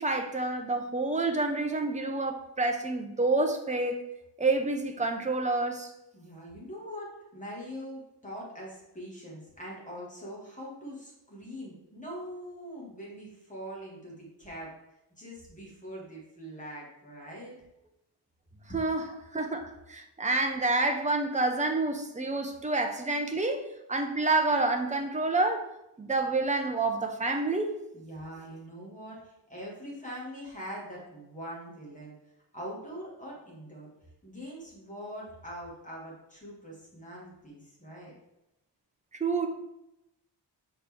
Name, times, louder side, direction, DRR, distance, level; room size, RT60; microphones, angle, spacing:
voice 1, 0.0-4.0 4.4-5.9 18.7-19.0 19.3-25.6 26.0-27.7 39.1-39.5, right 2 dB, 20° right, 5 dB, 0.5 m, -28 dB
voice 2, 6.1-14.7 15.2-17.6 27.9-32.2 32.5-33.9 34.2-38.1, equal, 20° left, -4 dB, 1.8 m, -43 dB
6.6 x 4.3 x 3.5 m, 0.89 s
wide cardioid pair, 180°, 42 cm